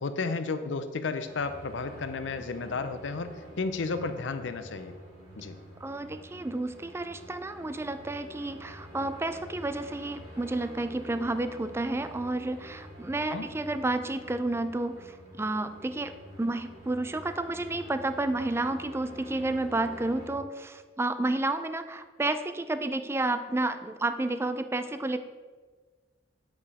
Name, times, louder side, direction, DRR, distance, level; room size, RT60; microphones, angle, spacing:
voice 1, 0.0-3.3 3.6-4.9 5.4-5.5 13.3-13.5, left 4 dB, 70° left, 10 dB, 0.5 m, -32 dB
sound 1, 1.2-20.3, equal, 60° right, 2.4 m, -48 dB
voice 2, 5.8-16.1 16.4-25.2, right 2 dB, 15° right, 10 dB, 0.4 m, -31 dB
8.4 x 5.0 x 4.8 m, 1.4 s
head